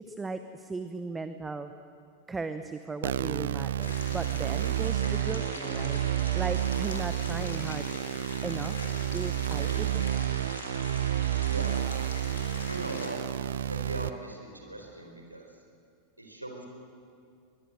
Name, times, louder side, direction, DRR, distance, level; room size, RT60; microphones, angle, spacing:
voice 1, 0.1-1.7 2.3-6.0 6.3-7.9 8.4-8.8 9.1-10.3, right 3 dB, 10° right, 10 dB, 0.9 m, -37 dB
sound 1, 3.0-14.1, right 11 dB, 65° right, 0.7 m, -30 dB
sound 2, 3.8-13.1, left 4 dB, 65° left, 3.9 m, -43 dB
sound 3, 4.7-14.3, left 5 dB, 30° left, 2.2 m, -58 dB
voice 2, 11.5-11.8 12.6-13.2 13.6-15.5 16.2-16.7, right 2 dB, 85° right, 2 dB, 4.1 m, -40 dB
23.0 x 21.5 x 7.9 m, 2.4 s
figure-of-eight pair, 90°, 0 cm